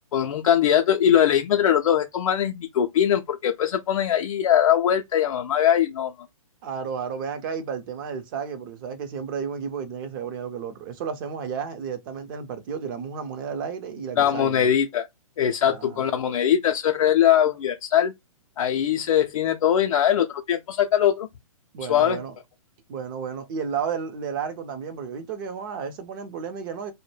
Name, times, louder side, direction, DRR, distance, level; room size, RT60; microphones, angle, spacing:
voice 1, 0.1-6.1 14.2-15.1 15.4-18.1 18.6-21.3 21.9-22.2, left 10 dB, 65° left, 0.4 m, -21 dB
voice 2, 6.6-14.7 15.6-16.1 21.7-22.3 22.9-26.9, right 6 dB, 35° right, 0.6 m, -32 dB
2.1 x 2.1 x 3.1 m
hypercardioid pair, 130°, 18 cm